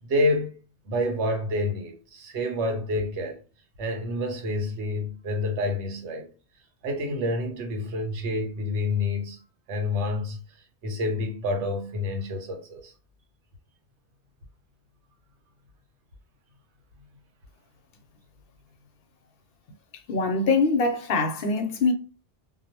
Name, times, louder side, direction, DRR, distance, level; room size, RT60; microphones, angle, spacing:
voice 1, 0.0-0.6 0.9-3.4 3.8-6.3 6.8-9.4 9.7-10.4 10.8-12.9, left 1 dB, 80° right, 1.0 m, -28 dB
voice 2, 20.1-21.9, left 3 dB, 65° left, 0.7 m, -23 dB
2.4 x 2.0 x 2.7 m
omnidirectional pair, 1.1 m